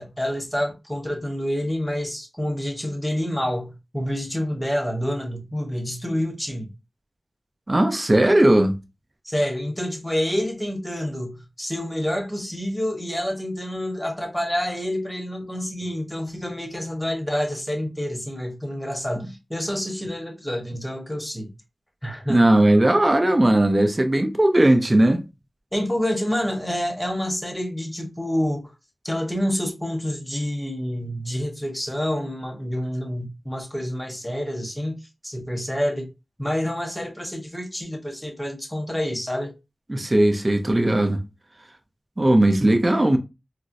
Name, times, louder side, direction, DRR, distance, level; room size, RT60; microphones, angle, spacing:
voice 1, 0.0-6.7 9.2-21.5 22.0-22.5 25.7-28.7 29.0-36.1 36.4-39.5, equal, 5° left, 1.1 m, -28 dB
voice 2, 7.7-8.7 22.3-25.2 39.9-41.2 42.2-43.2, right 1 dB, 35° right, 0.6 m, -18 dB
4.3 x 2.0 x 2.6 m
wide cardioid pair, 65°, 0 cm